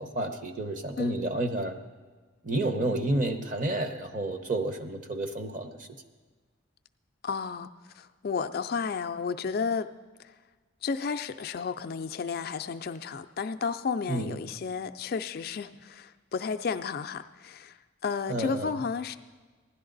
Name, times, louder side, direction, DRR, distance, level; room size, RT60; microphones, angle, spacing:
voice 1, 0.0-1.8 2.4-5.9 14.1-14.4 18.3-18.7, right 2 dB, 40° right, 7 dB, 0.8 m, -30 dB
voice 2, 7.2-9.9 10.2-10.3 10.8-19.2, left 5 dB, 45° left, 10 dB, 0.3 m, -32 dB
16.0 x 11.0 x 3.9 m, 1.4 s
head